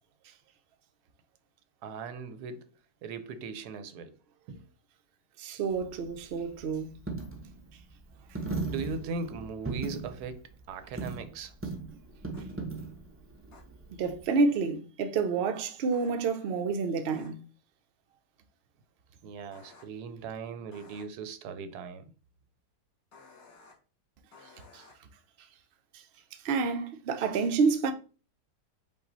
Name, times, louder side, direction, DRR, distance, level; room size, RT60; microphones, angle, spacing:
voice 1, 1.8-2.6 3.0-4.1 4.5-4.7 8.6-11.8 19.2-22.1, right 5 dB, 85° right, 1.2 m, -39 dB
voice 2, 5.4-6.9 14.0-17.4 24.7-24.8 26.4-27.9, right 4 dB, 60° right, 0.6 m, -28 dB
Coin (dropping), 5.7-14.2, right 3 dB, 20° right, 0.4 m, -39 dB
sound 1, 12.3-12.4 13.5-13.6 15.9-16.1 17.1-17.3 19.5-19.8 20.7-21.0 23.1-23.7 24.3-24.9, left 4 dB, 65° left, 1.9 m, -54 dB
5.4 x 2.4 x 3.9 m
omnidirectional pair, 1.7 m